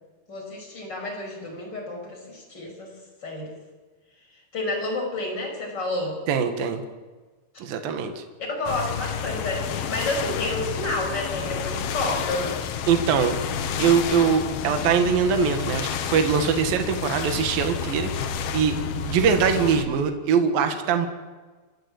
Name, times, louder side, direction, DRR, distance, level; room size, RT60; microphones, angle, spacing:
voice 1, 0.3-2.9 3.2-3.5 4.5-6.2 8.5-12.6 17.1-17.2, left 2 dB, 25° left, 1 dB, 6.1 m, -30 dB
voice 2, 6.3-6.8 7.6-8.2 12.9-13.4 13.8-18.8 19.0-21.1, right 6 dB, 70° right, 6 dB, 3.2 m, -22 dB
sound 1, 8.7-19.9, left 7 dB, 75° left, 3.0 m, -30 dB
28.5 x 11.0 x 8.7 m, 1.3 s
omnidirectional pair, 4.6 m